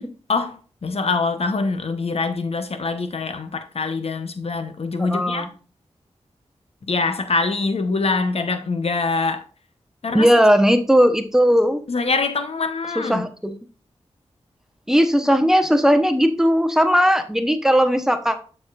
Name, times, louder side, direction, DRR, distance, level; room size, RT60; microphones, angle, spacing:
voice 1, 0.3-5.5 6.9-9.4 10.0-10.3 11.9-13.3, left 3 dB, 60° left, 0.8 m, -24 dB
voice 2, 5.0-5.5 10.1-11.8 13.0-13.5 14.9-18.4, equal, 5° right, 0.9 m, -17 dB
6.9 x 6.5 x 2.4 m
cardioid pair, 55°, 12 cm